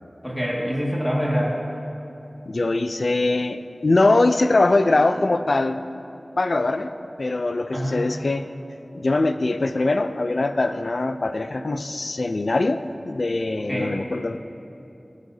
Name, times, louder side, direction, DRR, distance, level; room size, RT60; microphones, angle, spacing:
voice 1, 0.2-1.6 7.7-8.1 13.7-13.9, equal, 10° left, -5 dB, 2.1 m, -25 dB
voice 2, 2.5-5.8 6.4-6.9 7.2-8.5 8.9-14.4, left 2 dB, 75° left, 10 dB, 0.5 m, -22 dB
24.0 x 8.0 x 2.8 m, 2.8 s
wide cardioid pair, 45°, 0 cm